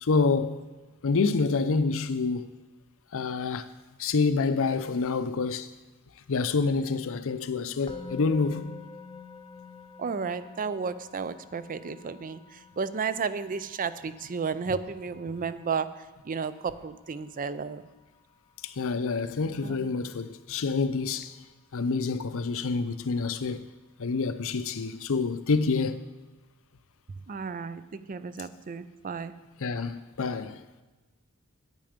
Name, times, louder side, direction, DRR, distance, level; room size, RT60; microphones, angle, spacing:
voice 1, 0.0-0.7 1.0-2.6 3.1-3.7 4.0-5.7 6.3-8.8 18.6-21.3 21.7-23.6 24.0-26.0 29.6-30.6, left 4 dB, 65° left, 0.6 m, -27 dB
Musical instrument, 7.9-19.0, left 5 dB, 20° left, 0.6 m, -48 dB
voice 2, 10.0-17.8 19.6-19.8 27.3-29.3, right 5 dB, 40° right, 0.4 m, -33 dB
9.1 x 9.0 x 5.1 m
head